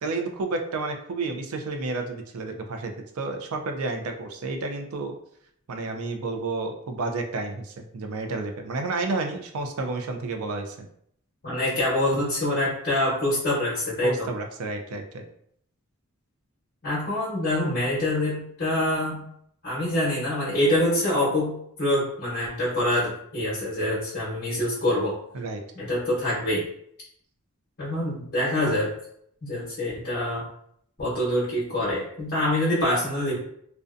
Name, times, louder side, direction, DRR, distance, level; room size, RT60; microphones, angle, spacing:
voice 1, 0.0-5.2 5.7-10.9 14.0-15.2 25.3-25.6, right 3 dB, 80° right, 5 dB, 0.4 m, -31 dB
voice 2, 11.4-14.3 16.8-19.3 19.6-25.2 25.7-26.7 27.8-28.9 29.4-30.5 31.0-33.4, left 1 dB, 45° left, -8 dB, 0.9 m, -25 dB
2.5 x 2.1 x 2.4 m, 0.68 s
head